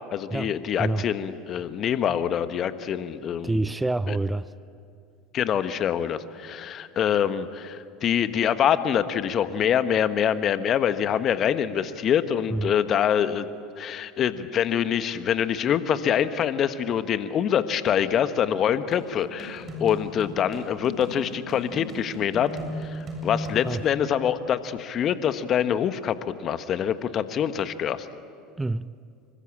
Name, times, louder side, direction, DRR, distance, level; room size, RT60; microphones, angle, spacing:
voice 1, 0.1-3.6 4.1-4.2 5.3-13.5 13.8-22.5 22.8-28.1, left 9 dB, 45° left, 11 dB, 1.4 m, -25 dB
voice 2, 3.4-4.5 12.5-12.7 23.6-23.8 28.6-28.9, right 2 dB, 10° right, 17 dB, 0.6 m, -27 dB
sound 1, 18.9-23.9, equal, 40° right, 7.6 m, -37 dB
27.0 x 24.0 x 8.7 m, 2.4 s
hypercardioid pair, 70°, 0 cm